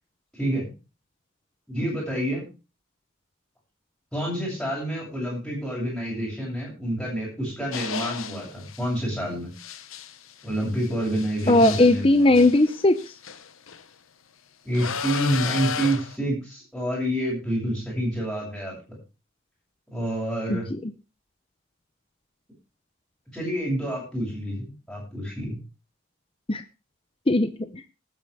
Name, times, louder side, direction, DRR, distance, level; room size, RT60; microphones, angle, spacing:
voice 1, 0.3-0.7 1.7-2.4 4.1-9.5 10.4-12.4 14.6-18.7 19.9-20.7 23.3-25.6, right 1 dB, ahead, -7 dB, 7.7 m, -28 dB
sound 1, 7.7-8.9 9.6-13.8 14.7-16.2, left 7 dB, 75° left, 1.1 m, -34 dB
voice 2, 11.5-13.0 20.5-20.6 26.5-26.6 27.3-27.7, left 2 dB, 25° left, 10 dB, 0.7 m, -18 dB
19.5 x 9.2 x 3.5 m, 0.31 s
head